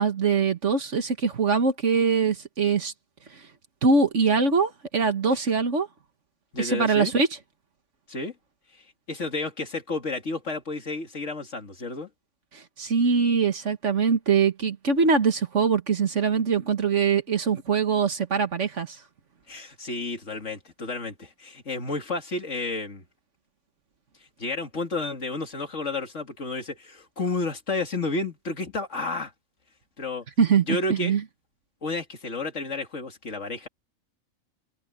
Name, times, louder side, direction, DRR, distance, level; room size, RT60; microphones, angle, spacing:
voice 1, 0.0-2.9 3.8-5.9 6.6-7.3 12.5-19.0 30.4-31.2, right 5 dB, 60° right, 1.8 m, -23 dB
voice 2, 6.5-7.1 8.1-8.3 8.7-12.1 19.5-23.0 24.4-29.3 30.0-30.2 30.7-31.1 31.8-33.7, left 3 dB, 60° left, 2.7 m, -31 dB
omnidirectional pair, 1.4 m